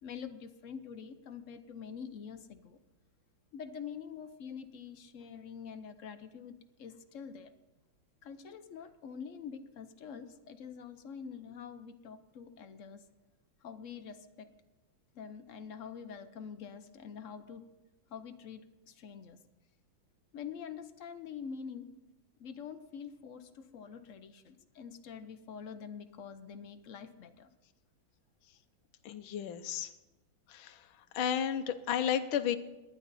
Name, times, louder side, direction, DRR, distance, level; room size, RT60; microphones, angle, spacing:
voice 1, 0.0-2.8 3.5-7.5 8.2-13.0 13.6-14.5 15.1-17.7 18.1-19.4 20.3-21.9 22.4-27.5, left 7 dB, 65° left, 9 dB, 0.8 m, -46 dB
voice 2, 29.0-29.9 30.5-30.8 31.1-32.6, left 9 dB, 80° left, 8 dB, 1.6 m, -32 dB
19.0 x 11.5 x 4.1 m, 1.0 s
omnidirectional pair, 2.2 m